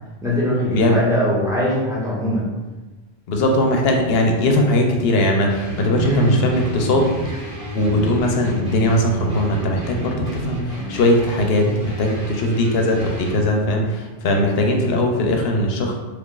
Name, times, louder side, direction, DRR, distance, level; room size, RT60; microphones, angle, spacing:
voice 1, 0.2-2.4 6.1-6.3, left 1 dB, 5° right, -7 dB, 0.8 m, -21 dB
voice 2, 3.3-7.1 7.7-15.9, left 1 dB, 75° left, 2 dB, 0.8 m, -19 dB
sound 1, 5.5-13.4, right 1 dB, 65° right, 1.3 m, -30 dB
3.1 x 2.4 x 3.7 m, 1.2 s
omnidirectional pair, 1.1 m